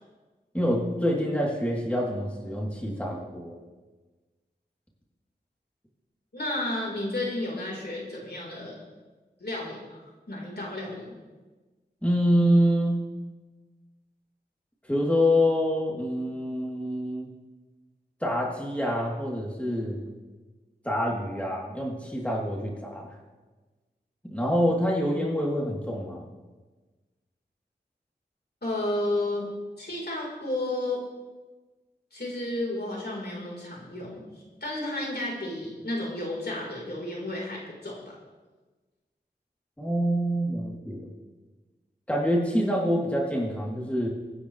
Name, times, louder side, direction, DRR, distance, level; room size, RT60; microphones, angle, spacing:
voice 1, 0.5-3.6 12.0-13.0 14.9-17.3 18.2-20.0 20.8-23.2 24.2-26.2 39.8-41.1 42.1-44.1, equal, 5° left, -3 dB, 3.4 m, -26 dB
voice 2, 6.3-8.8 9.4-10.0 10.3-11.1 28.6-29.5 29.8-31.0 32.1-34.2 34.6-38.0, left 1 dB, 65° left, -3 dB, 4.4 m, -32 dB
24.0 x 9.9 x 3.4 m, 1.3 s
wide cardioid pair, 40°, 18 cm